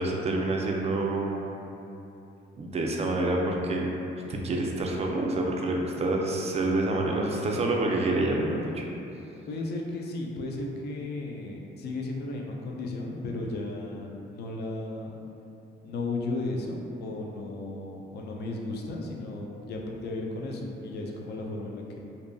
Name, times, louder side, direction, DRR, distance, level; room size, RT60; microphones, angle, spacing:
voice 1, 0.0-1.4 2.6-3.9 4.3-8.8, right 2 dB, 30° right, 0 dB, 0.3 m, -27 dB
voice 2, 9.5-15.2 15.8-22.0, left 2 dB, 55° left, -1 dB, 0.4 m, -34 dB
2.6 x 2.5 x 2.2 m, 2.9 s
cardioid pair, 90°, 20 cm